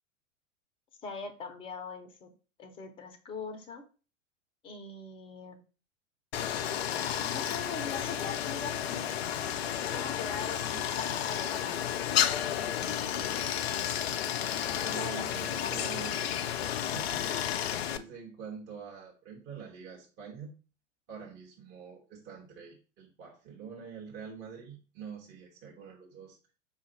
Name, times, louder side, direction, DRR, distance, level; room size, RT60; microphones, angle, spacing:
voice 1, 1.0-2.3 2.6-3.8 4.6-5.6 7.2-9.1 9.9-11.8 12.6-13.3 14.7-15.8, left 4 dB, 15° left, 5 dB, 0.6 m, -42 dB
Stream, 6.3-18.0, left 10 dB, 55° left, 0.5 m, -32 dB
voice 2, 14.9-16.3 16.8-20.5 21.1-26.4, right 6 dB, 30° right, -3 dB, 1.0 m, -46 dB
5.0 x 2.5 x 3.9 m, 0.35 s
figure-of-eight pair, 100°, 38 cm